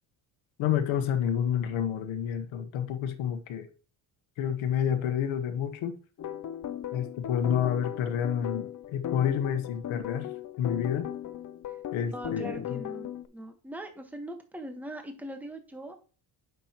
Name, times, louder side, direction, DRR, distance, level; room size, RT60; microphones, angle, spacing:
voice 1, 0.6-3.7 4.4-6.0 6.9-11.1 11.9-12.8, left 9 dB, 75° left, 1.2 m, -29 dB
sound 1, 6.2-13.3, left 11 dB, 40° left, 0.6 m, -37 dB
voice 2, 12.1-16.0, right 1 dB, 5° right, 1.3 m, -41 dB
8.7 x 6.1 x 3.0 m
cardioid pair, 90°, 48 cm